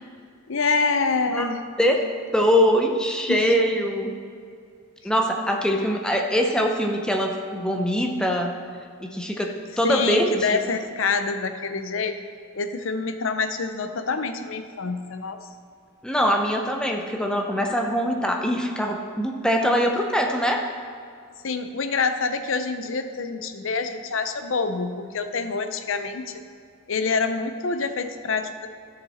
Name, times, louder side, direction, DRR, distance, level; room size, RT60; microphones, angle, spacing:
voice 1, 0.5-1.6 3.3-3.5 9.8-12.2 12.5-15.4 21.4-26.3 26.9-28.7, left 4 dB, 65° left, 9 dB, 0.6 m, -26 dB
voice 2, 2.3-4.1 5.0-8.5 9.0-10.6 16.0-20.6, equal, 5° left, 2 dB, 0.6 m, -23 dB
12.5 x 6.8 x 4.2 m, 2.3 s
head